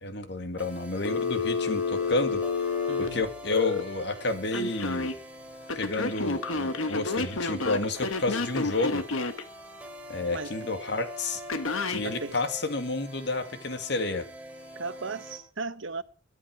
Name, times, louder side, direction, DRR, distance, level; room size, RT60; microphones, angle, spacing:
voice 1, 0.0-2.4 3.0-5.1 5.7-9.0 10.1-11.4 11.9-14.3, left 2 dB, 55° left, 2.3 m, -30 dB
sound 1, 0.6-15.4, equal, 5° right, 3.7 m, -44 dB
Telephone, 1.0-3.8 4.5-5.1 5.7-9.4 11.5-12.0, left 4 dB, 80° left, 1.7 m, -29 dB
voice 2, 2.9-3.3 10.3-10.7 12.0-12.4 14.7-16.0, right 4 dB, 70° right, 1.0 m, -36 dB
22.5 x 9.8 x 4.9 m
head